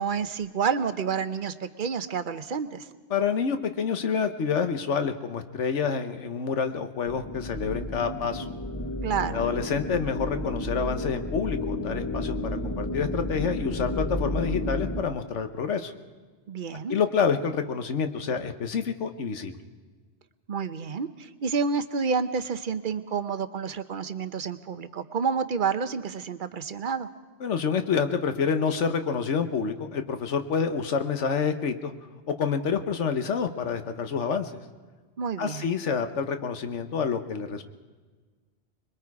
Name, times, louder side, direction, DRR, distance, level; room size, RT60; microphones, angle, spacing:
voice 1, 0.0-2.9 9.0-9.4 16.5-17.0 20.5-27.1 35.2-35.7, right 6 dB, 50° right, 11 dB, 0.9 m, -29 dB
voice 2, 3.1-8.5 9.3-12.3 12.6-15.9 16.9-19.5 27.4-31.9 32.3-34.5 35.4-37.6, left 6 dB, 85° left, 8 dB, 1.4 m, -28 dB
sound 1, 7.1-15.0, left 1 dB, 15° left, 1.0 m, -32 dB
26.0 x 22.0 x 4.8 m, 1.4 s
omnidirectional pair, 1.2 m